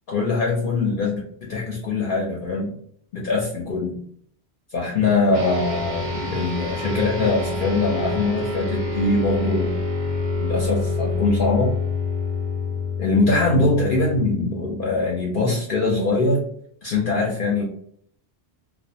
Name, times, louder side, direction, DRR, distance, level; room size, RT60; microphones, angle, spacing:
voice 1, 0.1-2.7 3.1-4.0 4.7-9.7 10.4-11.7 13.0-16.5 16.8-17.6, left 3 dB, 60° left, -2 dB, 0.7 m, -22 dB
sound 1, 5.3-15.0, left 3 dB, 50° right, 0.7 m, -27 dB
2.3 x 2.1 x 2.6 m, 0.63 s
omnidirectional pair, 1.1 m